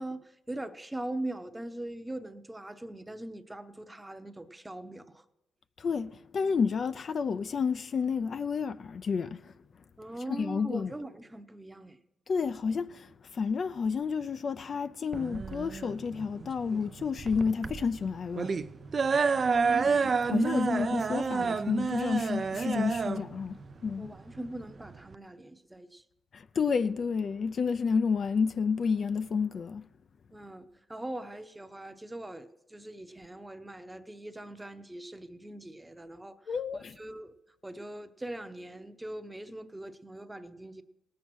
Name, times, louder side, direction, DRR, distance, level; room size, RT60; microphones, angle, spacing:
voice 1, 0.0-5.2 10.0-12.0 19.4-20.5 24.0-26.0 30.3-36.3 36.7-37.3 37.6-40.8, right 1 dB, 10° right, 0.8 m, -41 dB
voice 2, 5.8-9.5 10.3-10.9 12.3-18.6 20.3-24.1 26.3-29.9 36.5-37.0, left 5 dB, 45° left, 0.4 m, -30 dB
sound 1, 15.1-25.2, right 5 dB, 40° right, 0.4 m, -29 dB
17.5 x 7.4 x 6.2 m
cardioid pair, 90°, 0 cm